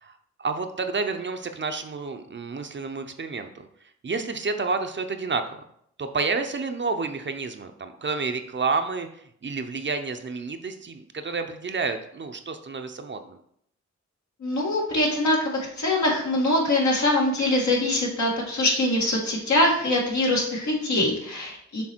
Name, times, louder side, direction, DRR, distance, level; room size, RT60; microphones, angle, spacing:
voice 1, 0.0-3.7 4.0-5.6 6.0-13.4, right 4 dB, 40° right, 7 dB, 0.6 m, -30 dB
voice 2, 14.4-21.8, left 1 dB, 75° left, -2 dB, 1.9 m, -23 dB
6.5 x 3.3 x 4.4 m, 0.70 s
cardioid pair, 70°, 29 cm